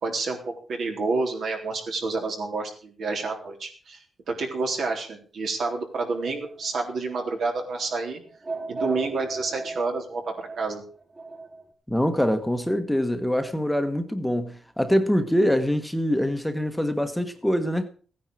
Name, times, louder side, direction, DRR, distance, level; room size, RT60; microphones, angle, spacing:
voice 1, 0.0-4.0 4.3-8.2 8.7-10.8, right 3 dB, 65° right, 3.7 m, -29 dB
sound 1, 6.1-11.6, right 3 dB, 30° right, 2.4 m, -38 dB
voice 2, 11.9-17.9, equal, 5° left, 1.3 m, -24 dB
16.0 x 10.0 x 4.8 m
cardioid pair, 110°, 0 cm